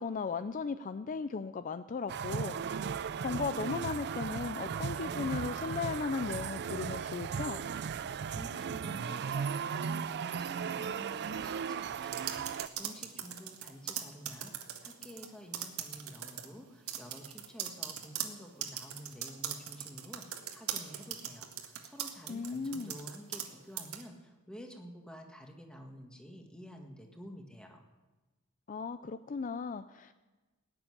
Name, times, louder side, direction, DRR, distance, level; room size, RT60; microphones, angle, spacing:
voice 1, 0.0-2.6 3.2-7.6 22.3-23.0 28.7-30.2, left 4 dB, 40° left, 12 dB, 0.4 m, -36 dB
sound 1, 2.1-12.7, right 6 dB, 50° right, 0.4 m, -36 dB
voice 2, 8.0-14.5 14.8-27.8, equal, 5° left, 2 dB, 1.7 m, -50 dB
sound 2, 12.0-15.3 15.5-16.5 16.9-23.5 23.8-24.0, right 10 dB, 85° right, 1.6 m, -39 dB
18.0 x 7.2 x 9.8 m, 1.2 s
head